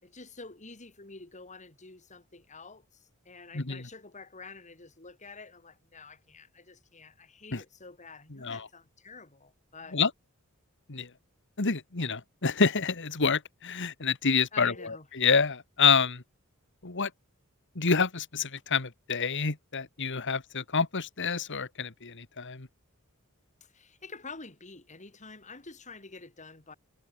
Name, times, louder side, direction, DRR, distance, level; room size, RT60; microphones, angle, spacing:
voice 1, 0.0-10.0 14.5-15.1 23.6-26.7, left 4 dB, 35° left, 3.5 m, -48 dB
voice 2, 3.5-3.9 7.5-7.6 8.3-8.7 9.9-10.1 10.9-11.1 11.6-16.2 16.8-17.1 17.8-22.7, left 5 dB, 60° left, 1.8 m, -28 dB
head